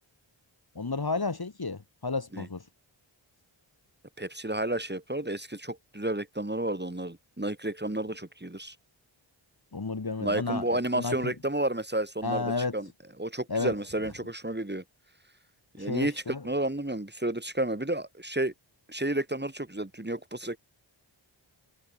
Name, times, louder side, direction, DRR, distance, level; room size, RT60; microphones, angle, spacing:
voice 1, 0.7-2.6 9.7-11.3 12.2-12.8 13.5-13.7 15.8-16.4, left 3 dB, 50° left, 3.2 m, -32 dB
voice 2, 4.2-8.8 10.2-12.9 13.2-14.8 15.7-18.5 18.9-20.6, right 1 dB, 20° right, 7.0 m, -31 dB
wide cardioid pair, 60°, 48 cm